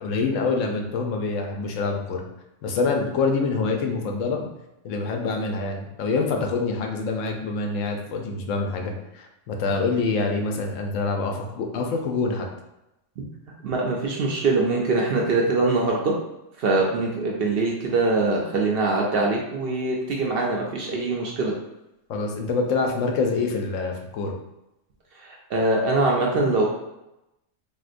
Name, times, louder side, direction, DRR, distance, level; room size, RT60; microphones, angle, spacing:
voice 1, 0.0-2.2 2.6-4.4 4.8-12.5 22.1-24.3, left 4 dB, 85° left, 2 dB, 0.9 m, -26 dB
voice 2, 13.6-16.1 16.6-21.5 25.2-26.7, right 3 dB, 65° right, -1 dB, 0.6 m, -23 dB
3.5 x 2.7 x 2.5 m, 0.91 s
omnidirectional pair, 1.3 m